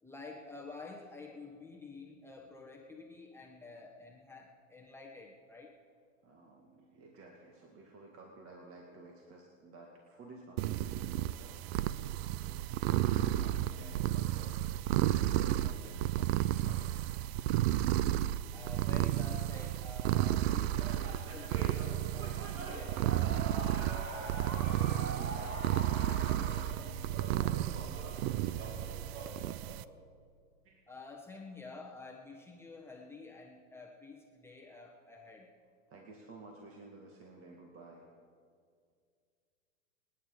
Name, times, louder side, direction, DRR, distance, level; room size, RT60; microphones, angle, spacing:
voice 1, 0.0-5.8 11.9-12.0 18.5-23.7 30.9-35.5, left 3 dB, 5° left, -2 dB, 1.3 m, -50 dB
voice 2, 6.2-14.8 15.1-17.1 23.7-29.2 30.6-30.9 35.9-38.1, right 2 dB, 35° right, 0 dB, 2.0 m, -53 dB
sound 1, 10.6-29.8, right 14 dB, 50° right, 0.5 m, -32 dB
sound 2, 20.7-29.7, right 2 dB, 85° right, 2.9 m, -44 dB
26.5 x 9.8 x 4.9 m, 2.2 s
hypercardioid pair, 115°, 40 cm